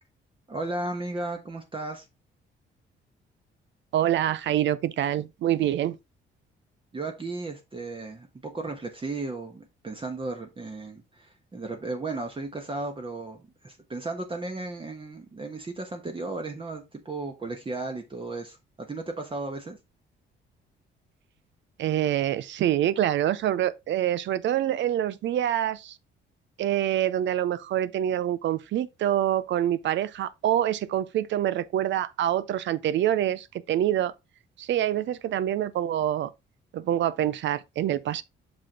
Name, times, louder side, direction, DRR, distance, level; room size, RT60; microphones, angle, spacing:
voice 1, 0.5-2.0 6.9-19.8, right 2 dB, 25° right, 1.2 m, -35 dB
voice 2, 3.9-6.0 21.8-26.0 26.6-34.1 34.6-36.3 36.7-38.2, right 11 dB, 70° right, 0.5 m, -26 dB
6.1 x 4.9 x 3.7 m
cardioid pair, 90°, 20 cm